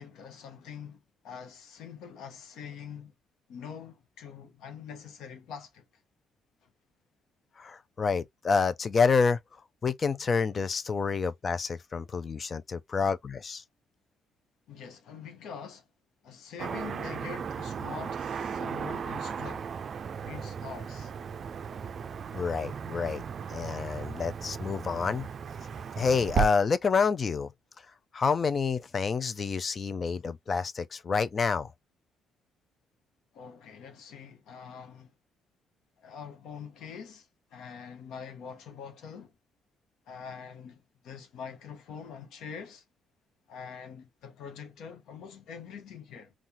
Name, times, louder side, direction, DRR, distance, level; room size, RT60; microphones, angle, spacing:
voice 1, 0.0-3.1 3.5-5.8 14.7-15.9 16.2-19.7 20.2-21.1 33.3-35.1 36.0-39.3 40.1-42.8 43.5-46.3, left 6 dB, 80° left, 1.0 m, -44 dB
voice 2, 7.6-9.4 9.8-13.6 22.3-23.2 23.5-25.3 26.0-27.5 28.1-31.7, left 5 dB, 45° left, 0.5 m, -28 dB
Car passing by / Traffic noise roadway noise, 16.6-26.5, right 7 dB, 55° right, 0.4 m, -35 dB
3.9 x 2.3 x 2.8 m
supercardioid pair, 75°, 0 cm